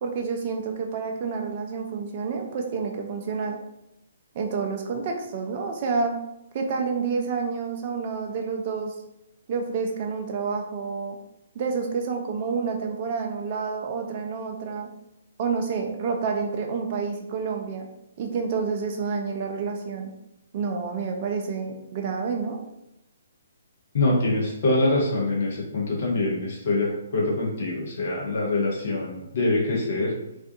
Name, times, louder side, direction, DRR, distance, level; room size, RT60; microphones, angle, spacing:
voice 1, 0.0-3.6 4.3-6.2 6.5-8.9 9.5-11.2 11.5-14.9 15.4-17.9 18.2-20.1 20.5-22.6, right 5 dB, 35° right, 3 dB, 0.4 m, -29 dB
voice 2, 23.9-30.1, left 2 dB, 45° left, -3 dB, 0.7 m, -24 dB
2.5 x 2.2 x 2.5 m, 0.87 s
figure-of-eight pair, 130°, 0 cm